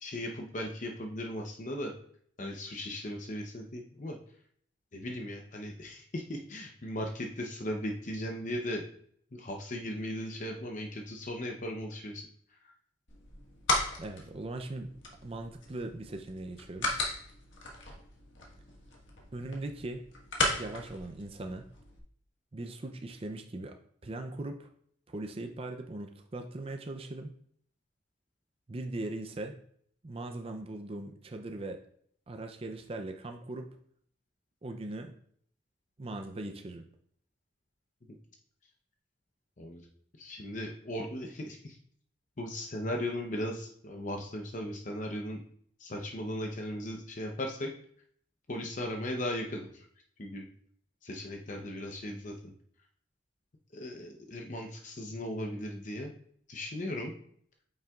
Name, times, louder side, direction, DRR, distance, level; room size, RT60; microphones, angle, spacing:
voice 1, 0.0-1.9 2.4-4.2 4.9-8.8 9.3-12.3 12.6-12.7 39.6-39.9 40.2-41.8 42.4-45.4 45.8-47.7 48.5-49.8 50.2-50.5 51.0-52.5 53.7-56.1 56.5-57.1, left 1 dB, 40° left, 1 dB, 0.7 m, -37 dB
sound 1, 13.1-22.0, left 2 dB, 70° left, 1.5 m, -36 dB
voice 2, 14.0-14.9 15.2-17.1 19.3-20.1 20.6-21.7 22.5-23.7 24.0-24.7 25.1-27.3 28.7-29.6 30.0-31.8 32.3-33.8 34.6-35.1 36.0-36.9, right 2 dB, 30° right, 5 dB, 0.5 m, -39 dB
8.9 x 5.5 x 2.4 m, 0.63 s
head